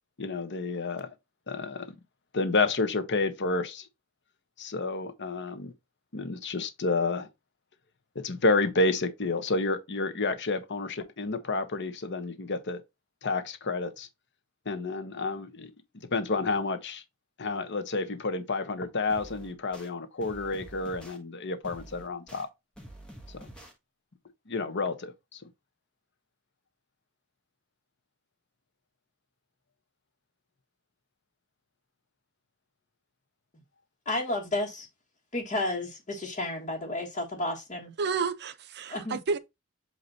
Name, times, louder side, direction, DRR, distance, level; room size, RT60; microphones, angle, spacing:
voice 1, 0.2-1.1 1.5-1.9 2.3-3.9 4.6-5.7 6.1-7.3 8.1-12.8 13.2-14.1 14.7-15.7 16.1-17.0 17.4-22.5 23.4-23.5 24.5-25.4, left 3 dB, 55° left, 1.1 m, -30 dB
sound 1, 19.1-19.9 20.2-21.2 21.6-22.4 22.8-23.7, right 1 dB, 5° left, 1.6 m, -47 dB
voice 2, 34.0-34.9 35.3-37.9 38.9-39.2, left 2 dB, 35° left, 1.6 m, -32 dB
voice 3, 38.0-39.4, right 5 dB, 55° right, 0.6 m, -30 dB
8.1 x 2.9 x 4.2 m
head